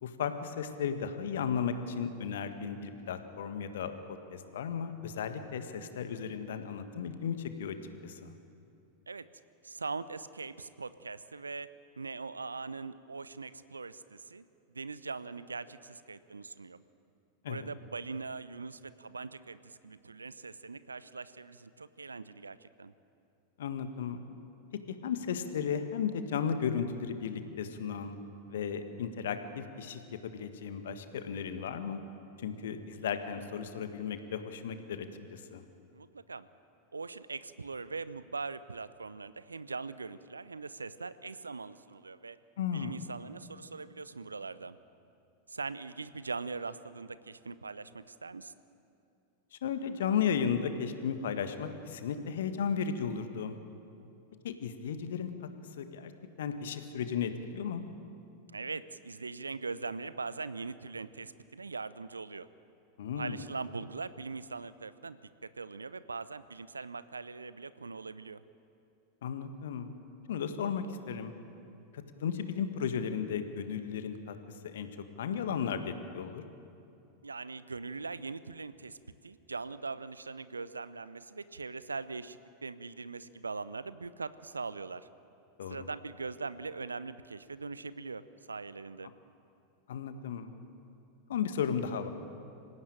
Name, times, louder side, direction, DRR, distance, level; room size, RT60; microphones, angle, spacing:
voice 1, 0.0-7.8 8.0-8.3 17.4-17.7 23.6-24.2 24.9-28.2 28.5-32.0 32.4-35.6 42.6-43.0 49.5-53.6 54.4-55.3 55.8-56.1 56.4-57.8 63.0-63.4 69.2-69.9 70.3-71.3 71.9-74.3 74.6-74.9 75.2-76.4 85.6-85.8 89.9-90.5 91.3-92.1, left 7 dB, 60° left, 9 dB, 1.7 m, -35 dB
voice 2, 9.6-11.7 12.0-16.8 17.5-22.9 35.9-36.5 36.9-42.4 42.7-44.8 45.5-48.5 58.5-62.5 63.2-68.4 77.2-79.0 79.2-85.1 85.7-89.1, right 4 dB, 75° right, 16 dB, 0.7 m, -41 dB
26.0 x 16.0 x 8.9 m, 2.6 s
figure-of-eight pair, 90°, 0 cm